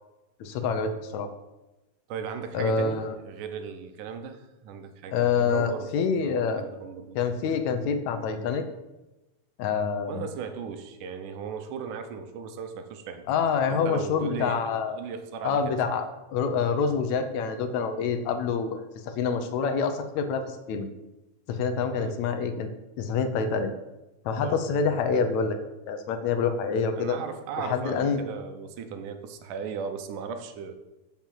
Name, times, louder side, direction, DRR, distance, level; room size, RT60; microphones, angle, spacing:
voice 1, 0.4-1.3 2.5-3.2 5.1-6.6 7.2-8.6 9.6-10.2 13.3-15.0 15.4-16.1 16.3-20.9 21.5-22.7 23.0-23.7 24.3-25.6 25.9-27.2 27.6-28.2, left 5 dB, 75° left, 7 dB, 2.0 m, -26 dB
voice 2, 2.1-5.9 6.2-7.6 10.1-13.3 13.7-16.0 22.0-22.2 24.4-24.6 26.9-30.8, right 6 dB, 90° right, 8 dB, 2.4 m, -37 dB
7.2 x 5.9 x 7.5 m, 1.0 s
omnidirectional pair, 3.5 m